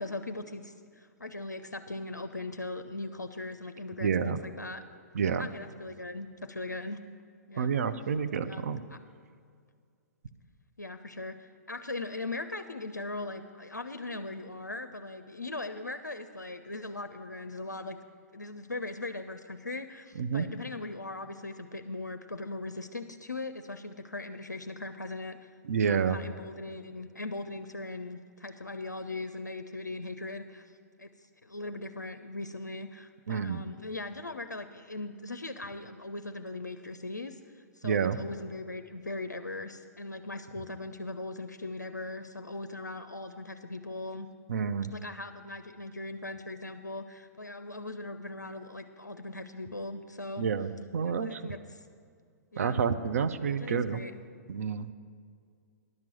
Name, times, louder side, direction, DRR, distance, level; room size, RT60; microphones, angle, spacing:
voice 1, 0.0-4.8 5.4-7.0 7.5-7.7 8.4-9.0 10.8-18.0 18.3-25.5 25.8-44.3 44.9-50.5 51.0-51.9 52.5-52.8 53.5-54.1, left 2 dB, 85° left, 8 dB, 0.4 m, -39 dB
voice 2, 4.0-4.4 5.1-5.5 7.6-8.8 20.2-20.5 25.6-26.2 33.3-33.6 37.8-38.2 44.5-44.9 50.4-51.5 52.6-54.0 54.5-54.9, right 6 dB, 55° right, 10 dB, 0.5 m, -29 dB
10.5 x 5.9 x 7.4 m, 2.2 s
figure-of-eight pair, 115°, 9 cm